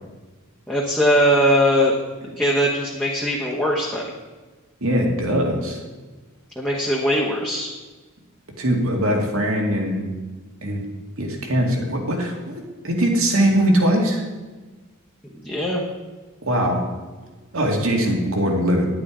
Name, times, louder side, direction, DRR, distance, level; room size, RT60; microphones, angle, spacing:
voice 1, 0.7-1.9 2.4-4.1 6.6-7.7 15.4-15.8, equal, 5° left, -4 dB, 1.1 m, -20 dB
voice 2, 4.8-5.8 8.6-10.0 10.6-10.8 11.2-14.2 16.4-16.8 17.5-18.9, equal, 75° right, 1 dB, 2.2 m, -21 dB
10.0 x 9.2 x 5.0 m, 1.3 s
head